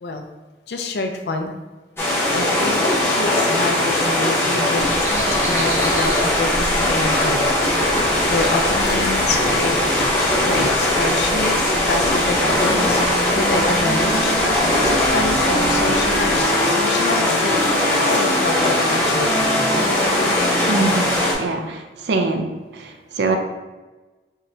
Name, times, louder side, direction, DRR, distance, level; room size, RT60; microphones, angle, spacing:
voice 1, 0.7-1.5 2.3-7.4 8.3-9.8 10.4-19.5, left 3 dB, 70° left, 4 dB, 0.4 m, -27 dB
sound 1, 2.0-21.3, left 1 dB, 15° left, 0.8 m, -20 dB
sound 2, 4.7-16.5, equal, 40° right, 1.3 m, -32 dB
Wind instrument woodwind instrument, 12.7-21.3, equal, 5° right, 1.2 m, -27 dB
voice 2, 20.7-22.5 22.7-23.4, right 3 dB, 75° right, 5 dB, 0.5 m, -23 dB
4.8 x 2.9 x 2.7 m, 1.2 s
head